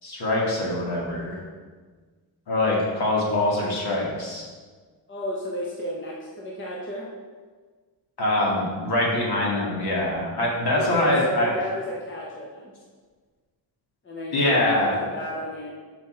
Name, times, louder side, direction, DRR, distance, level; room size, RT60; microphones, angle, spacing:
voice 1, 0.0-1.4 2.5-4.4 8.2-11.5 14.3-15.0, left 1 dB, 60° left, -4 dB, 2.3 m, -24 dB
voice 2, 5.1-7.1 10.7-12.7 14.0-15.7, equal, 25° left, -4 dB, 1.1 m, -32 dB
7.2 x 5.8 x 4.5 m, 1.5 s
wide cardioid pair, 150°, 43 cm